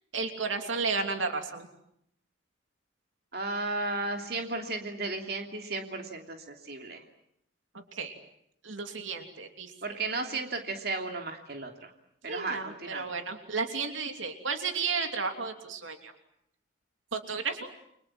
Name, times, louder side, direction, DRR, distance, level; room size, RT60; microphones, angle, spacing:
voice 1, 0.1-1.7 7.9-8.2 8.6-10.0 12.3-16.1 17.1-17.7, right 4 dB, 90° right, 5 dB, 3.0 m, -33 dB
voice 2, 3.3-7.0 9.8-11.9 12.2-13.1, right 3 dB, 50° right, 4 dB, 3.0 m, -34 dB
30.0 x 24.5 x 7.6 m, 0.73 s
head